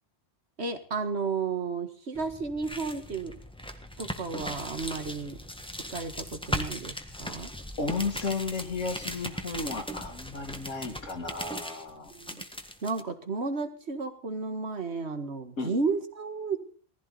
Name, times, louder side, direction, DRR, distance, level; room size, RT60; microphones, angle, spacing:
voice 1, 0.6-3.4 4.0-5.4 5.9-7.5 12.1-12.4 12.8-16.6, right 4 dB, 60° right, 9 dB, 2.1 m, -33 dB
sound 1, 2.1-13.0, equal, 5° left, 1.5 m, -38 dB
voice 2, 7.8-12.1 15.6-15.7, left 4 dB, 80° left, 3 dB, 2.3 m, -33 dB
19.0 x 15.0 x 4.1 m, 0.42 s
omnidirectional pair, 1.3 m